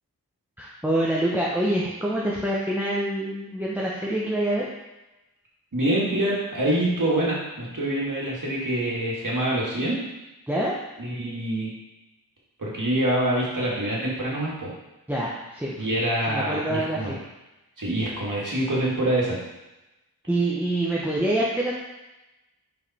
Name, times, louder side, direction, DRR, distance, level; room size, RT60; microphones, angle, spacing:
voice 1, 0.6-4.6 10.5-10.8 15.1-15.8 16.2-17.2 20.3-21.7, right 1 dB, 5° right, -4 dB, 0.9 m, -26 dB
voice 2, 5.7-10.0 11.0-11.7 12.6-14.7 15.8-17.1 17.8-19.4, right 1 dB, 55° right, -5 dB, 2.0 m, -25 dB
5.2 x 4.9 x 4.2 m, 1.0 s
wide cardioid pair, 70°, 37 cm